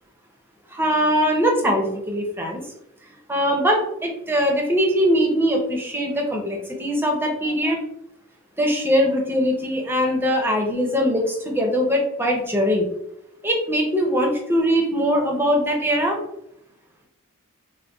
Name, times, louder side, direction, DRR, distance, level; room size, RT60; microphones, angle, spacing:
voice 1, 0.7-2.6 3.3-7.8 8.6-12.9 13.4-16.2, equal, 10° right, 0 dB, 0.5 m, -21 dB
3.6 x 2.1 x 2.3 m, 0.79 s
head